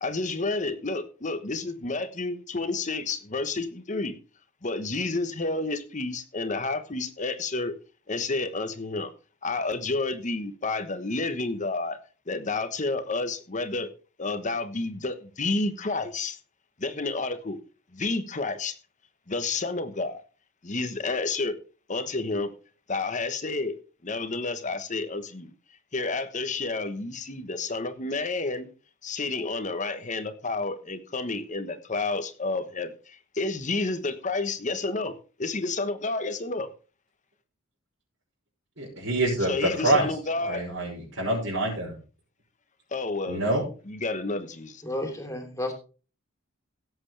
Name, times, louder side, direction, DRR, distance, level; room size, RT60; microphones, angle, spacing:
voice 1, 0.0-4.1 4.6-7.7 8.1-9.1 9.4-12.0 12.3-13.9 14.2-16.4 16.8-17.6 17.9-18.7 19.3-20.2 20.6-21.6 21.9-22.5 22.9-23.8 24.0-25.5 25.9-28.7 29.0-36.7 39.4-40.6 42.9-43.4 43.9-44.7, left 3 dB, 40° left, 1.1 m, -30 dB
voice 2, 38.8-40.1 40.4-41.9 43.3-43.6, right 2 dB, 70° right, 5.9 m, -26 dB
voice 3, 44.8-45.7, left 1 dB, 15° left, 3.2 m, -32 dB
17.0 x 8.0 x 3.3 m
head